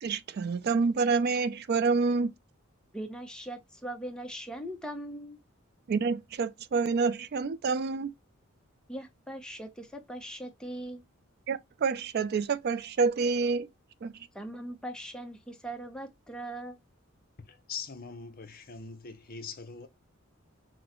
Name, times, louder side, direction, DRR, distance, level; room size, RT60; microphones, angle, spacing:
voice 1, 0.0-2.3 5.9-8.1 11.5-13.7 14.0-14.1, right 4 dB, 50° right, 0.3 m, -28 dB
voice 2, 2.9-5.4 8.9-11.0 14.3-16.8, right 1 dB, 5° left, 0.7 m, -40 dB
voice 3, 17.4-19.9, left 5 dB, 45° left, 0.7 m, -42 dB
6.0 x 2.1 x 3.0 m
head